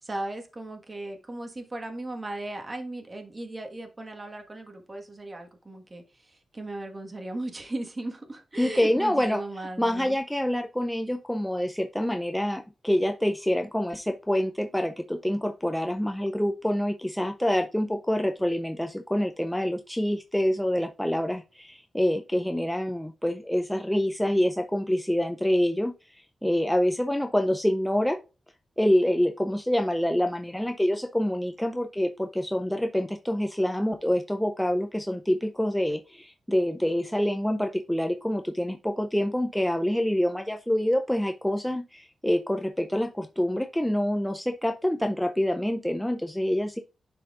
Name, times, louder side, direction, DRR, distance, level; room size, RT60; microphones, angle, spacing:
voice 1, 0.0-10.2, right 2 dB, 25° right, 1.4 m, -37 dB
voice 2, 8.6-9.4 9.8-28.2 28.8-46.8, equal, 5° left, 0.5 m, -26 dB
11.0 x 4.6 x 2.4 m
wide cardioid pair, 130°, 0 cm